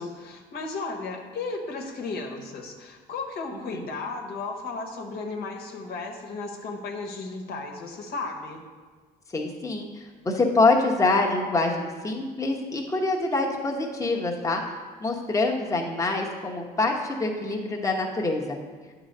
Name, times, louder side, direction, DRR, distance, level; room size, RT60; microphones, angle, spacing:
voice 1, 0.0-8.6, left 3 dB, 65° left, 2 dB, 1.2 m, -34 dB
voice 2, 3.5-3.8 9.3-14.6 15.0-18.6, left 3 dB, 20° left, -1 dB, 1.0 m, -25 dB
9.4 x 3.9 x 6.6 m, 1.4 s
cardioid pair, 110°, 17 cm